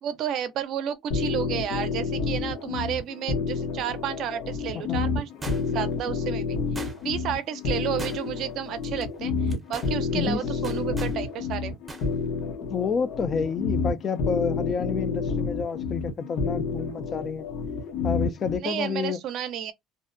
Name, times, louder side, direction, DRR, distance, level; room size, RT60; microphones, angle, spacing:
voice 1, 0.0-11.7 18.6-19.7, right 9 dB, 60° right, 0.5 m, -32 dB
sound 1, 1.1-18.6, left 4 dB, 70° left, 0.7 m, -29 dB
sound 2, 5.4-5.9 6.8-7.3 8.0-8.5 8.8-9.0 9.5-9.9 10.6-11.2 11.9-12.1 12.4-12.5, right 2 dB, 15° right, 0.6 m, -39 dB
voice 2, 10.1-10.5 12.6-17.5 18.0-19.2, left 6 dB, 35° left, 0.4 m, -29 dB
2.6 x 2.1 x 2.5 m
cardioid pair, 120°, 0 cm